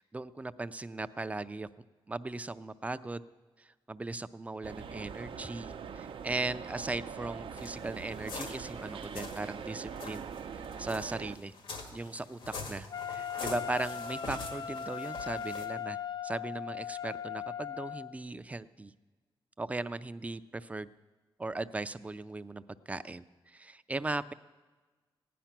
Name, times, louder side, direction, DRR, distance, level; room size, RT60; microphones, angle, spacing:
voice 1, 0.0-1.7 2.1-3.2 3.6-10.3 10.6-11.5 11.9-16.0 16.2-18.9 19.6-20.9 21.4-24.3, right 2 dB, 15° right, 13 dB, 0.4 m, -38 dB
sound 1, 4.6-11.4, right 6 dB, 75° right, 0.6 m, -43 dB
sound 2, 7.6-9.5 9.9-15.7, left 3 dB, 85° left, 1.6 m, -44 dB
Wind instrument woodwind instrument, 12.9-18.1, left 8 dB, 60° left, 0.6 m, -39 dB
16.0 x 10.0 x 5.9 m, 1.3 s
wide cardioid pair, 125°, 9 cm